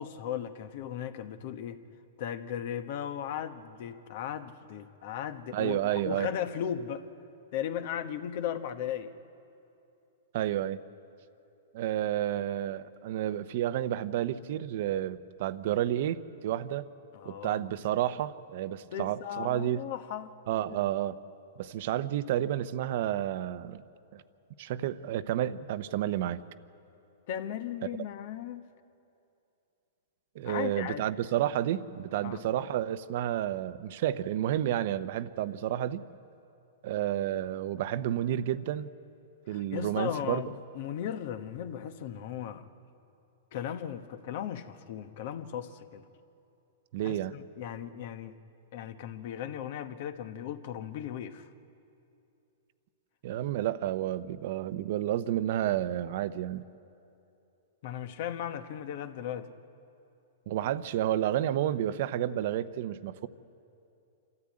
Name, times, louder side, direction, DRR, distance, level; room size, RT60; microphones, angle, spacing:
voice 1, 0.0-1.8 2.2-7.0 7.5-9.1 17.1-17.6 18.9-20.3 20.7-20.8 27.3-28.6 30.4-31.0 32.2-32.4 39.5-42.7 43.5-46.0 47.0-48.4 48.7-51.5 57.8-59.5, left 9 dB, 55° left, 9 dB, 1.2 m, -36 dB
voice 2, 5.5-6.3 10.3-10.8 11.7-16.9 17.2-19.8 20.5-21.2 21.6-23.8 24.1-24.2 24.6-26.4 30.3-36.0 36.8-38.9 39.5-40.4 46.9-47.4 53.2-56.7 60.5-63.3, right 12 dB, 60° right, 13 dB, 0.8 m, -30 dB
27.0 x 14.0 x 8.7 m, 2.7 s
hypercardioid pair, 130°, 0 cm